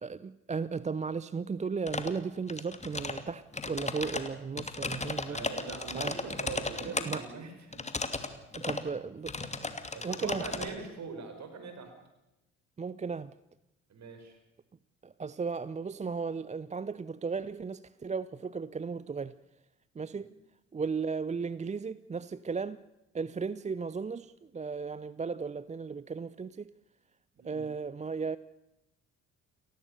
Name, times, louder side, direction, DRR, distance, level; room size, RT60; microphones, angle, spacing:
voice 1, 0.0-5.4 5.9-6.1 7.0-7.2 8.6-10.4 12.8-13.3 15.0-19.3 20.0-20.3 20.7-22.8 23.1-26.7 27.4-28.4, right 5 dB, 20° right, 17 dB, 0.7 m, -35 dB
sound 1, 1.9-2.2 2.5-3.2 3.5-7.2 7.7-8.3 8.5-8.9 9.3-10.7, left 3 dB, 20° left, 2.7 m, -35 dB
voice 2, 5.3-7.8 9.9-12.0 13.9-14.4 27.4-27.7, right 5 dB, 45° right, 6 dB, 5.5 m, -42 dB
29.5 x 16.0 x 6.8 m, 0.94 s
figure-of-eight pair, 45°, 37 cm